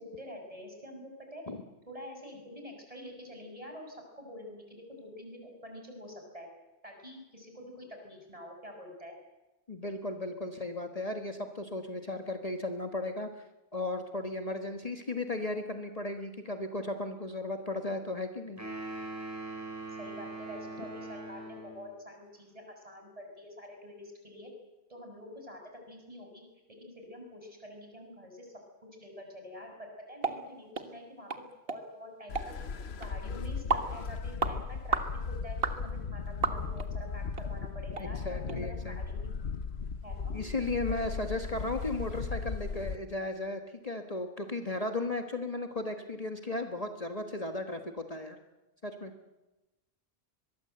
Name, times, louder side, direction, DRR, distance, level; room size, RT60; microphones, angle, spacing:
voice 1, 0.0-1.4 1.9-6.5 6.8-9.2 19.9-24.5 24.9-26.4 26.7-28.5 29.0-32.5 32.9-39.3 40.0-40.4 41.0-41.1, left 1 dB, 35° right, 3 dB, 6.2 m, -47 dB
voice 2, 9.7-13.3 13.7-18.6 38.0-39.0 40.3-48.4 48.8-49.1, left 2 dB, 35° left, 5 dB, 1.6 m, -35 dB
sound 1, 18.6-21.9, right 2 dB, 15° right, 5.9 m, -41 dB
sound 2, 30.2-30.4 30.7-30.9 31.3-31.4 31.7-31.8 32.4-32.5 33.0-33.1 33.7-33.9 34.4-34.6 34.9-35.1 35.6-35.8 36.4-36.9 37.4-37.5 37.9-38.1 38.5-38.6, right 4 dB, 65° right, 1.8 m, -31 dB
sound 3, 32.3-43.0, left 5 dB, 80° left, 1.3 m, -37 dB
23.0 x 22.5 x 7.9 m, 1.0 s
omnidirectional pair, 1.1 m